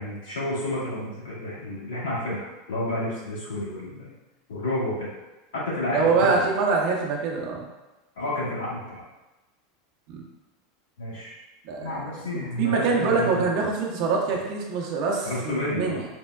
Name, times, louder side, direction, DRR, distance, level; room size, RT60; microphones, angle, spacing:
voice 1, 0.0-4.1 4.5-5.1 5.5-6.4 8.2-9.0 11.0-11.3 11.7-13.5 14.3-14.4 15.2-16.0, left 1 dB, 75° left, -9 dB, 1.5 m, -30 dB
voice 2, 5.9-7.7 10.1-10.2 11.6-12.0 12.3-16.0, right 4 dB, 55° right, -1 dB, 0.6 m, -24 dB
4.3 x 2.1 x 2.3 m, 1.0 s
hypercardioid pair, 85°, 0 cm